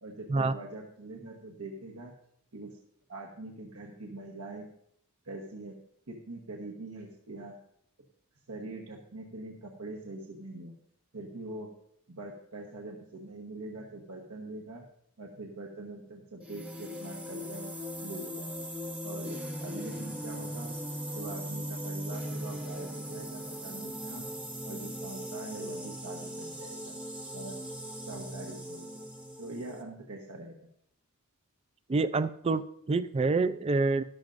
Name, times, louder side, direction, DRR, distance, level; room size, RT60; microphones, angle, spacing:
voice 1, 0.0-2.1 2.5-2.8 3.1-4.7 5.2-5.8 6.1-7.5 8.5-10.7 11.1-11.7 12.1-14.9 15.2-17.7 18.0-18.5 19.0-20.8 21.1-24.3 24.6-26.9 27.3-27.6 28.1-28.8 29.4-30.6, right 2 dB, 80° right, -1 dB, 1.2 m, -43 dB
sound 1, 16.4-29.8, equal, 5° right, 0.8 m, -39 dB
voice 2, 31.9-34.0, right 3 dB, 25° right, 13 dB, 0.4 m, -27 dB
13.5 x 11.5 x 2.6 m, 0.71 s
head